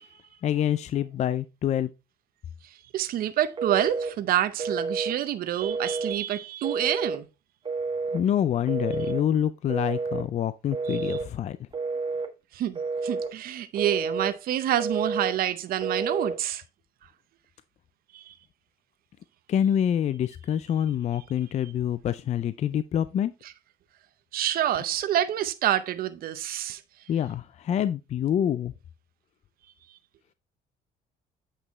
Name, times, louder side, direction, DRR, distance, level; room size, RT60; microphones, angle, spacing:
voice 1, 0.4-1.9 8.1-11.6 19.5-23.3 27.1-28.7, left 10 dB, 40° left, 0.4 m, -26 dB
voice 2, 2.9-7.3 10.9-11.2 12.5-16.6 18.1-18.3 24.3-26.8, right 12 dB, 60° right, 0.7 m, -27 dB
Telephone, 3.6-4.1 4.6-5.2 5.6-6.2 6.6-7.2 7.7-8.2 8.7-9.2 9.7-10.3 10.7-11.3 11.7-12.3 12.8-13.3 13.7-14.3 14.8-15.4 15.8-16.4, right 4 dB, 30° right, 1.2 m, -30 dB
8.4 x 5.6 x 3.0 m
cardioid pair, 110°, 17 cm